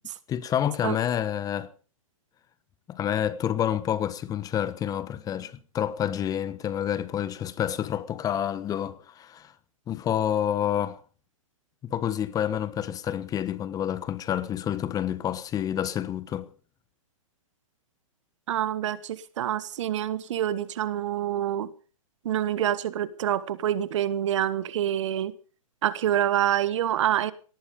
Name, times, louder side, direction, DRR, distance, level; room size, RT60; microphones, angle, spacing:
voice 1, 0.3-1.7 2.9-9.5 9.9-11.0 11.8-16.5, left 10 dB, 20° left, 1.2 m, -28 dB
voice 2, 18.5-21.7 22.2-25.3 25.8-27.3, right 11 dB, 60° right, 1.4 m, -26 dB
18.5 x 13.5 x 5.2 m
hypercardioid pair, 130°, 18 cm